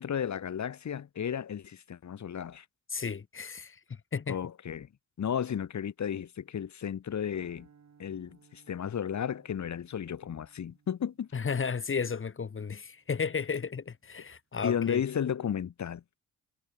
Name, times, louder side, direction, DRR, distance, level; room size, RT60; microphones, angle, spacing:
voice 1, 0.0-2.7 4.3-4.9 5.2-7.7 8.0-11.3 14.6-16.0, left 8 dB, 50° left, 1.7 m, -33 dB
voice 2, 2.9-3.8 4.1-4.4 11.3-15.0, left 5 dB, 35° left, 1.5 m, -33 dB
sound 1, 7.2-13.6, right 6 dB, 50° right, 5.7 m, -64 dB
cardioid pair, 75°, 35 cm